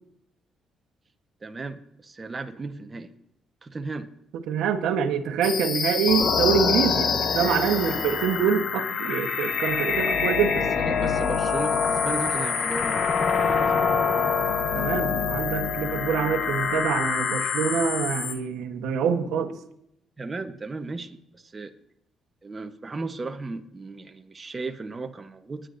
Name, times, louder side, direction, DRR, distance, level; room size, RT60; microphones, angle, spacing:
voice 1, 1.4-3.1 3.6-4.1 10.6-13.6 20.2-21.7 22.4-25.7, right 3 dB, 30° right, 6 dB, 1.0 m, -35 dB
voice 2, 4.5-10.7 14.7-19.5, right 7 dB, 90° right, 6 dB, 1.1 m, -25 dB
sound 1, 5.4-18.3, left 6 dB, 60° left, 1.1 m, -25 dB
24.0 x 10.0 x 2.6 m, 0.76 s
cardioid pair, 90°, 0 cm